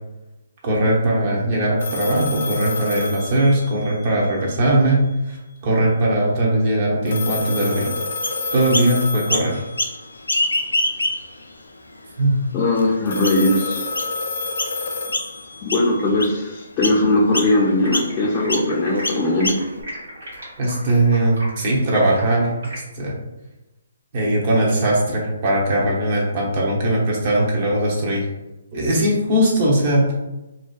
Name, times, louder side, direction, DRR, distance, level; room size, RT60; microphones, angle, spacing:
voice 1, 0.6-5.0 5.3-5.4 5.6-7.9 8.5-9.6 12.2-12.3 20.6-22.5 22.9-23.2 24.1-28.2 28.7-30.1, right 1 dB, 40° right, -3 dB, 0.8 m, -19 dB
sound 1, 1.8-4.1 7.1-9.9 13.1-16.0, left 4 dB, 70° left, 0.7 m, -29 dB
Chirp tweet, 8.2-8.9 9.3-10.0 10.2-11.4 12.0-12.1 12.8-12.9 13.2-13.5 14.0-14.1 14.6-14.8 15.1-15.4 15.7-16.4 16.8-17.0 17.3-17.5 17.9-18.1 18.5-18.7 19.0-19.8, left 2 dB, 90° left, 0.3 m, -24 dB
voice 2, 12.5-13.9 15.6-19.6, left 2 dB, 25° left, -5 dB, 0.5 m, -19 dB
Stream, 17.3-22.8, equal, 70° right, 1.3 m, -38 dB
2.7 x 2.2 x 2.3 m, 1.0 s
figure-of-eight pair, 140°, 0 cm